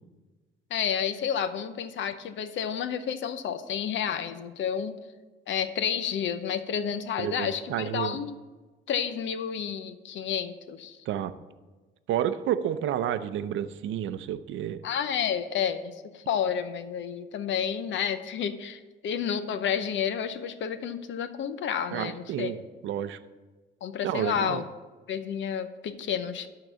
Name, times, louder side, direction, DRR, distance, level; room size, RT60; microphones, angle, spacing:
voice 1, 0.7-4.9 5.5-8.3 8.9-11.0 14.8-22.5 23.8-24.6 25.1-26.5, left 8 dB, 70° left, 11 dB, 0.8 m, -30 dB
voice 2, 7.2-8.2 11.1-11.3 12.1-14.8 21.9-23.2 24.0-24.6, right 10 dB, 80° right, 12 dB, 0.5 m, -30 dB
11.5 x 3.9 x 6.9 m, 1.3 s
cardioid pair, 90°, 20 cm